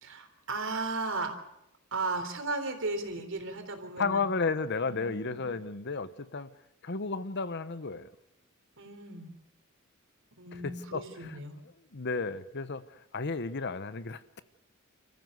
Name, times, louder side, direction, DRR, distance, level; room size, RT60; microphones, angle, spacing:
voice 1, 0.0-1.4 1.9-4.3 4.8-5.4 8.8-9.3 10.4-11.6, right 3 dB, 60° right, 7 dB, 3.6 m, -35 dB
voice 2, 4.0-6.5 6.8-8.1 10.6-11.0 11.9-12.8 13.1-14.4, left 4 dB, 55° left, 14 dB, 1.0 m, -32 dB
29.5 x 14.5 x 7.9 m, 0.84 s
head